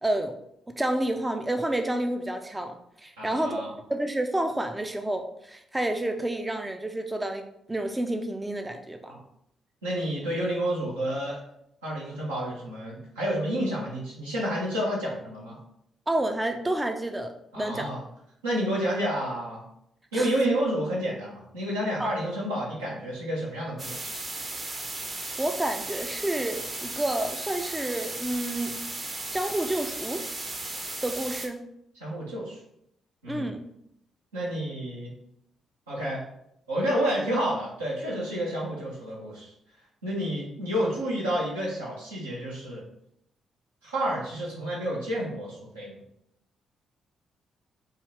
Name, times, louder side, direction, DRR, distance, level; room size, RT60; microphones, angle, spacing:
voice 1, 0.0-0.4 0.7-2.8 3.0-3.6 3.9-9.1 16.1-17.9 20.1-20.3 22.0-22.2 25.4-28.8 29.3-30.3 31.0-31.6 33.3-33.6, right 1 dB, 15° right, 5 dB, 0.5 m, -29 dB
voice 2, 3.2-3.7 9.1-9.2 9.8-11.4 11.8-15.6 17.5-18.0 18.4-19.6 20.1-24.1 32.0-32.6 33.2-33.5 34.3-35.1 35.9-36.2 36.7-39.5 40.0-42.8 43.8-46.0, equal, 85° right, -6 dB, 1.2 m, -30 dB
sound 1, 23.8-31.5, right 2 dB, 40° right, 0.8 m, -35 dB
4.7 x 2.7 x 3.2 m, 0.75 s
figure-of-eight pair, 40°, 0 cm